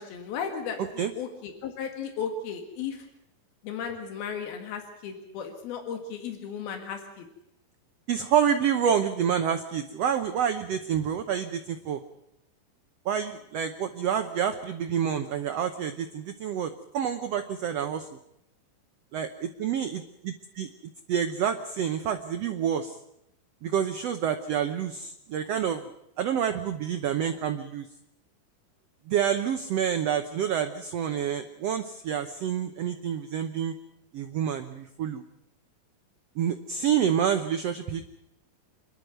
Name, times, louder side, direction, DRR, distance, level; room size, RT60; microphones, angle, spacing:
voice 1, 0.0-0.9 1.2-3.1 3.6-7.2, left 6 dB, 85° left, 5 dB, 3.7 m, -35 dB
voice 2, 0.8-1.1 8.1-12.0 13.0-18.1 19.1-19.9 20.6-20.7 21.1-23.0 23.6-25.8 26.2-27.9 29.1-33.7 34.1-35.2 36.4-38.0, right 8 dB, 85° right, 8 dB, 1.4 m, -28 dB
26.5 x 11.5 x 9.3 m, 0.80 s
omnidirectional pair, 4.2 m